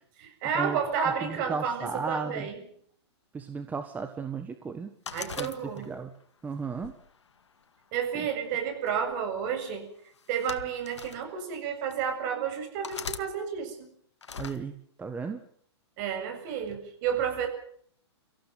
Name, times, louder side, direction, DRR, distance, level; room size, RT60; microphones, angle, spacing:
voice 1, 0.2-2.6 5.1-5.9 7.9-9.9 10.3-13.9 16.0-17.5, right 7 dB, 40° right, 6 dB, 7.5 m, -31 dB
voice 2, 1.2-2.5 3.3-4.9 5.4-6.1 6.4-6.9 8.1-8.2 14.4-15.4, right 5 dB, 10° right, 8 dB, 1.5 m, -35 dB
sound 1, 5.1-6.1 6.7-7.9 8.9-9.1 10.1-11.2 11.9-12.0 12.8-13.3 14.2-14.6, left 6 dB, 90° left, 1.9 m, -40 dB
25.5 x 15.5 x 9.3 m, 0.63 s
hypercardioid pair, 135°, 15 cm